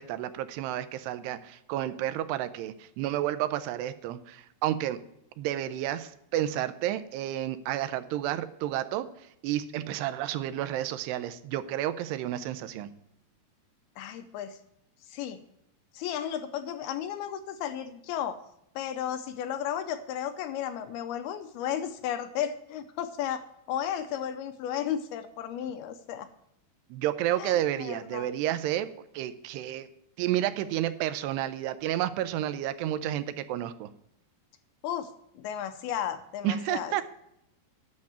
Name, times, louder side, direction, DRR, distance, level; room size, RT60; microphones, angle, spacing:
voice 1, 0.0-5.0 5.4-9.1 9.4-12.9 26.9-29.9 30.2-33.9 36.4-37.0, right 12 dB, 80° right, 12 dB, 2.7 m, -31 dB
voice 2, 14.0-14.6 15.1-15.4 15.9-18.4 18.8-26.3 27.4-28.3 34.8-36.9, left 9 dB, 80° left, 9 dB, 2.4 m, -34 dB
9.6 x 6.5 x 8.6 m, 0.79 s
omnidirectional pair, 4.8 m